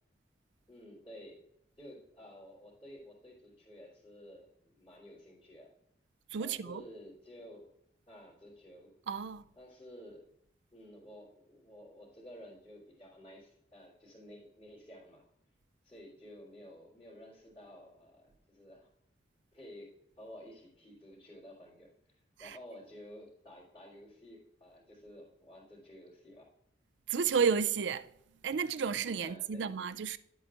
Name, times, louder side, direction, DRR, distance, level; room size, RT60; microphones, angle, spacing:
voice 1, 0.7-1.4 1.8-5.7 6.4-7.7 8.1-8.9 9.5-10.2 10.7-15.2 15.8-18.9 19.5-22.1 22.4-26.5 27.2-27.4 29.2-29.7, equal, 25° left, 2.9 m, -52 dB
voice 2, 6.3-6.8 9.1-9.4 22.4-22.6 27.1-28.1 28.4-30.2, right 6 dB, 75° right, 0.4 m, -32 dB
11.0 x 8.0 x 2.5 m
head